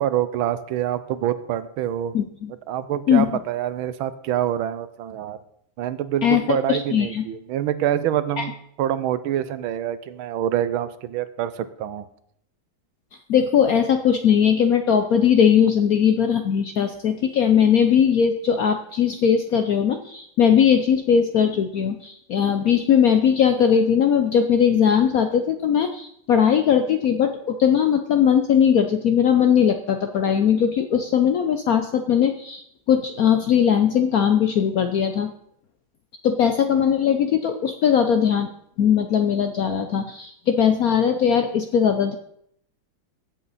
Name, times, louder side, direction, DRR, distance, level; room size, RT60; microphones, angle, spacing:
voice 1, 0.0-2.1 2.7-5.4 5.8-12.1, right 11 dB, 80° right, 13 dB, 1.5 m, -26 dB
voice 2, 2.1-2.5 3.1-3.4 6.2-7.2 8.4-8.5 13.3-32.6 32.9-35.3 36.2-38.5 38.8-42.2, left 8 dB, 70° left, 7 dB, 0.8 m, -19 dB
15.0 x 8.1 x 4.1 m, 0.72 s
omnidirectional pair, 2.2 m